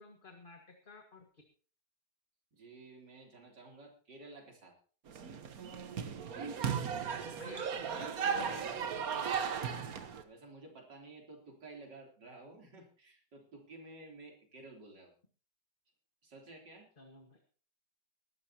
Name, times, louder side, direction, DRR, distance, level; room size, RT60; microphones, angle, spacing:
voice 1, 0.0-1.4 7.1-9.3 17.0-17.4, left 3 dB, 30° left, 3 dB, 1.8 m, -53 dB
voice 2, 2.5-4.7 10.2-15.1 16.2-16.9, right 2 dB, 85° right, 0 dB, 3.9 m, -53 dB
sound 1, 5.1-10.2, right 7 dB, 60° right, 1.5 m, -36 dB
21.5 x 12.5 x 2.9 m, 0.40 s
omnidirectional pair, 1.8 m